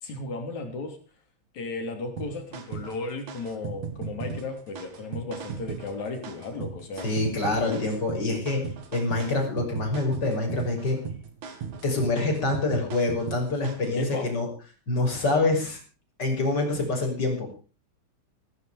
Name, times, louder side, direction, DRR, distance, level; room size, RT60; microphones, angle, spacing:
voice 1, 0.0-1.0 1.5-7.1 7.6-7.9 14.0-14.3, left 3 dB, 65° left, 5 dB, 4.5 m, -34 dB
sound 1, 2.2-14.0, right 6 dB, 70° right, 3.4 m, -37 dB
voice 2, 7.0-11.0 11.8-14.5 14.9-15.8 16.2-17.5, left 2 dB, 30° left, 1 dB, 6.4 m, -26 dB
16.5 x 14.5 x 5.0 m, 0.37 s
omnidirectional pair, 3.6 m